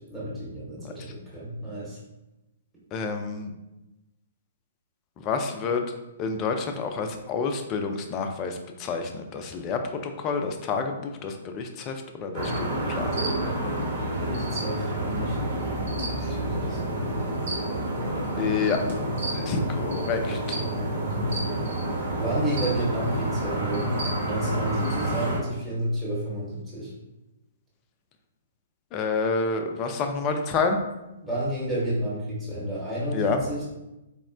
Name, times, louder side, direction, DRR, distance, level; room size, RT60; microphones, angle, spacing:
voice 1, 0.0-2.0 14.2-15.4 16.1-17.1 19.5-19.8 20.5-21.3 22.2-26.9 31.2-33.7, right 1 dB, ahead, -9 dB, 0.9 m, -31 dB
voice 2, 2.9-3.5 5.2-5.8 6.2-13.2 18.4-18.8 19.3-20.6 28.9-30.8 33.1-33.4, left 4 dB, 30° left, 5 dB, 0.3 m, -29 dB
sound 1, 12.3-25.4, right 1 dB, 55° right, 0.9 m, -29 dB
4.1 x 2.0 x 2.5 m, 0.99 s
figure-of-eight pair, 120°, 0 cm